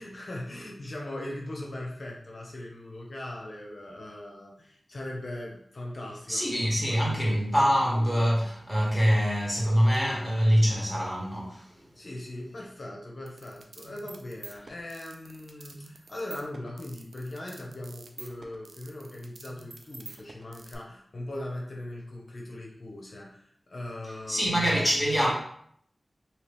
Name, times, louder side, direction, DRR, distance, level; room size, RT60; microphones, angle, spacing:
voice 1, 0.0-6.5 6.8-7.8 11.9-24.5, left 1 dB, 65° left, 0.7 m, -40 dB
voice 2, 6.3-11.7 24.3-25.3, equal, 5° right, 1.4 m, -24 dB
sound 1, 13.3-20.8, right 3 dB, 75° right, 0.4 m, -47 dB
2.8 x 2.7 x 3.4 m
cardioid pair, 45°, 0 cm